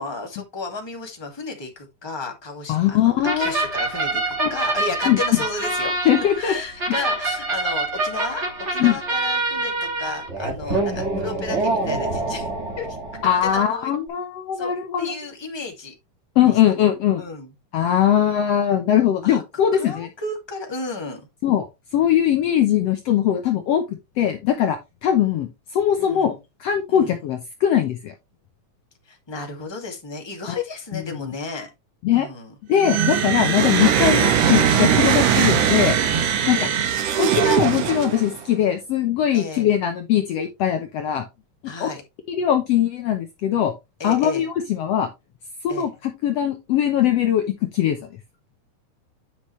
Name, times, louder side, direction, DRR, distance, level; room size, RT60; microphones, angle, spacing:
voice 1, 0.0-8.5 8.7-12.5 12.8-13.0 13.4-13.9 14.5-15.9 16.4-16.6 17.2-17.5 19.2-19.4 19.7-21.2 26.0-26.4 26.9-27.2 29.0-31.7 32.1-32.5 33.6-33.8 36.4-36.8 39.3-39.7 41.6-42.0 44.0-44.5 45.7-45.9, left 3 dB, 10° left, 1.9 m, -33 dB
voice 2, 2.7-3.6 4.4-4.5 5.1-5.2 6.1-6.5 8.8-9.0 13.2-15.1 16.4-17.2 17.7-20.1 21.4-21.7 21.9-23.8 24.2-26.4 26.6-28.1 30.5-30.6 31.1-31.3 32.0-32.3 32.7-36.0 36.5-36.7 37.2-41.3 41.8-41.9 42.4-43.7 44.0-45.1 45.6-47.4 47.7-48.1, left 10 dB, 65° left, 1.8 m, -20 dB
sound 1, 3.2-13.6, right 2 dB, 25° right, 2.2 m, -26 dB
sound 2, 32.8-38.4, right 8 dB, 60° right, 2.1 m, -20 dB
10.0 x 6.0 x 3.2 m
omnidirectional pair, 3.5 m